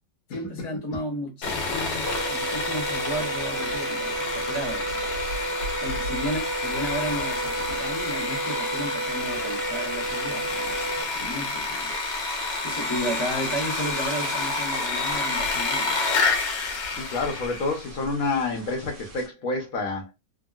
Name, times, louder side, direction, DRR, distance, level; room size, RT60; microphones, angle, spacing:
voice 1, 0.3-5.1 5.8-11.9 12.6-16.0, equal, 20° left, 0.6 m, -33 dB
Sawing, 1.4-17.8, left 4 dB, 85° left, 1.4 m, -29 dB
sound 1, 1.6-19.3, right 1 dB, 65° right, 1.5 m, -40 dB
sound 2, 2.0-11.0, right 3 dB, 40° right, 0.9 m, -32 dB
voice 2, 16.9-20.1, left 3 dB, 60° left, 1.1 m, -28 dB
3.6 x 2.2 x 2.3 m
omnidirectional pair, 1.9 m